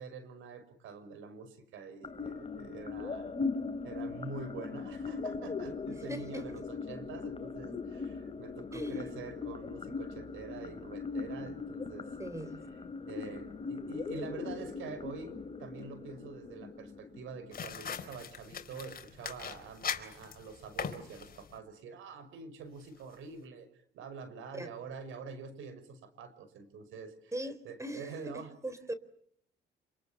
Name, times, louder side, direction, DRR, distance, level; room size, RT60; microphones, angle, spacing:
voice 1, 0.0-3.3 3.8-12.1 13.0-15.3 15.6-23.7 23.9-27.3 27.6-28.5, right 4 dB, 85° right, 6.0 m, -46 dB
sound 1, 2.0-18.0, left 4 dB, 30° left, 3.2 m, -40 dB
voice 2, 6.1-6.5 8.7-9.0 12.2-12.6 24.5-24.7 27.3-28.9, right 1 dB, 15° right, 3.8 m, -40 dB
sound 2, 17.5-21.6, left 7 dB, 50° left, 3.9 m, -41 dB
27.5 x 27.5 x 7.3 m
cardioid pair, 90°, 20 cm